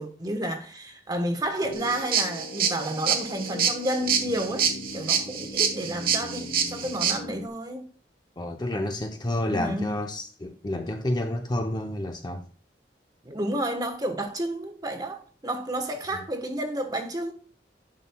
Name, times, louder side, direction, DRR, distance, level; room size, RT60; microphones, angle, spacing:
voice 1, 0.0-7.9 9.5-9.9 13.2-17.3, right 1 dB, 20° right, 1.2 m, -31 dB
sound 1, 1.6-7.5, left 1 dB, 60° left, 0.8 m, -40 dB
sound 2, 1.7-7.2, right 7 dB, 55° right, 1.3 m, -26 dB
voice 2, 8.4-12.4, left 1 dB, 25° left, 0.7 m, -29 dB
10.5 x 6.2 x 2.3 m
head